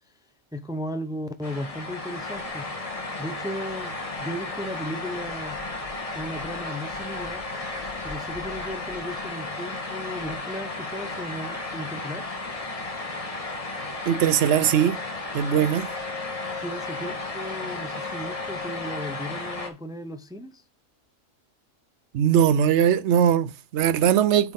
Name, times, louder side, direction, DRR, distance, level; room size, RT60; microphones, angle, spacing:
voice 1, 0.5-2.7 3.2-3.9 4.2-5.6 6.1-7.4 8.0-12.2 16.5-20.6, equal, 5° right, 0.4 m, -35 dB
sound 1, 1.4-19.7, left 2 dB, 30° left, 1.4 m, -34 dB
voice 2, 14.1-15.0 15.3-15.9 22.1-24.5, right 9 dB, 65° right, 0.9 m, -20 dB
8.9 x 4.5 x 3.7 m
omnidirectional pair, 1.3 m